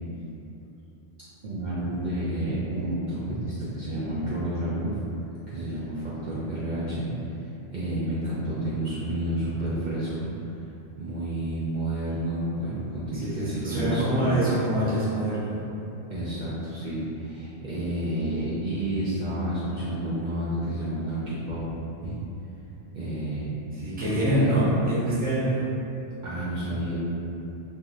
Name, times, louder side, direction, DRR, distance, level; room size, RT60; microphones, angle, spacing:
voice 1, 1.4-4.9 5.5-7.1 7.7-10.3 11.0-14.4 16.1-21.6 22.0-22.1 22.9-23.5 24.1-24.6 26.2-27.0, right 1 dB, 55° right, -10 dB, 0.6 m, -30 dB
voice 2, 13.1-15.5 23.7-25.5, right 1 dB, 10° right, -10 dB, 0.5 m, -25 dB
3.0 x 2.6 x 2.4 m, 2.9 s
omnidirectional pair, 1.1 m